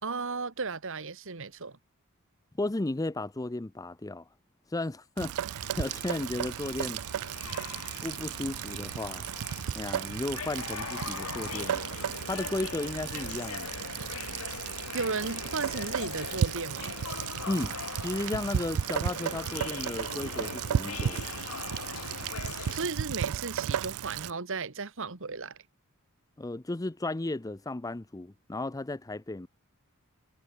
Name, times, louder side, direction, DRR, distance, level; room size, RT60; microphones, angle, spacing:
voice 1, 0.0-1.8 14.9-16.9 22.7-25.6, right 4 dB, 60° right, 1.7 m, -35 dB
voice 2, 2.6-4.2 4.7-7.0 8.0-9.2 9.7-11.8 12.2-13.7 17.5-21.2 26.4-29.5, left 2 dB, 15° left, 0.5 m, -34 dB
Rain, 5.2-24.3, right 9 dB, 80° right, 0.4 m, -34 dB
sound 1, 5.6-22.8, left 6 dB, 75° left, 1.1 m, -41 dB
head